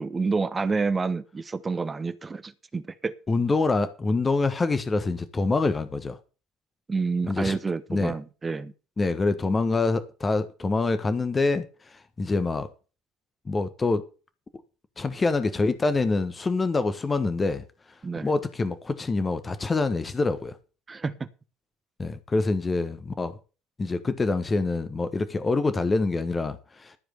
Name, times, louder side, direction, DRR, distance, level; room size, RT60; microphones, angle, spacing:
voice 1, 0.0-3.1 6.9-8.7 18.0-18.3 20.9-21.3, right 4 dB, 25° right, 1.2 m, -29 dB
voice 2, 3.3-6.2 7.3-7.6 7.9-8.1 9.0-12.7 13.4-14.1 15.0-17.6 18.2-20.6 22.0-23.4 23.8-27.0, left 3 dB, 25° left, 1.4 m, -26 dB
14.0 x 5.1 x 7.9 m
figure-of-eight pair, 60°, 0 cm